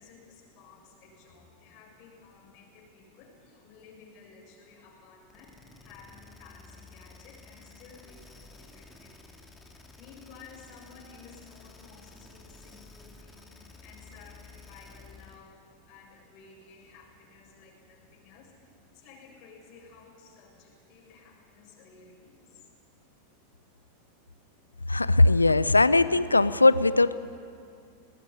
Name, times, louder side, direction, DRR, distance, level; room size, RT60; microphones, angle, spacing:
voice 1, 0.0-22.7, left 5 dB, 45° left, -1 dB, 7.3 m, -54 dB
sound 1, 5.3-15.5, left 3 dB, 10° left, 2.5 m, -52 dB
voice 2, 24.9-27.1, left 2 dB, 85° left, 17 dB, 0.6 m, -20 dB
20.5 x 20.0 x 9.9 m, 2.4 s
figure-of-eight pair, 90°, 0 cm